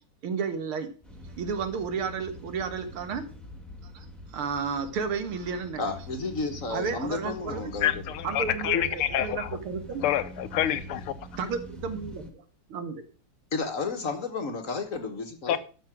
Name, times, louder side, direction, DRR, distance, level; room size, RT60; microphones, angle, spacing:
voice 1, 0.2-0.9 1.2-3.2 3.8-5.8 6.7-7.7 8.2-10.0 11.4-12.4 12.7-13.0, right 6 dB, 75° right, 2.3 m, -32 dB
sound 1, 1.0-12.3, left 1 dB, ahead, 1.6 m, -44 dB
voice 2, 5.8-7.9 13.5-15.6, left 4 dB, 45° left, 1.4 m, -32 dB
voice 3, 7.8-9.5 10.0-11.1 15.5-15.6, left 11 dB, 80° left, 1.7 m, -27 dB
12.5 x 6.0 x 6.0 m
omnidirectional pair, 2.4 m